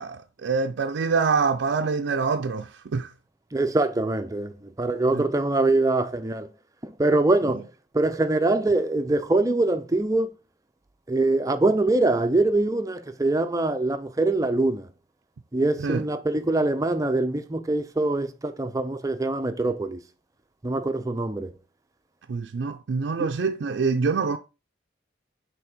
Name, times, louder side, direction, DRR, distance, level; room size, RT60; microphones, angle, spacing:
voice 1, 0.0-3.1 5.1-5.2 7.5-7.6 15.8-16.0 22.3-24.4, right 5 dB, 75° right, 0.4 m, -25 dB
voice 2, 3.5-6.5 6.8-7.6 7.9-10.3 11.1-14.9 15.5-20.0 20.6-21.5 23.2-23.3, right 2 dB, 20° right, 0.5 m, -23 dB
5.8 x 3.4 x 5.1 m
head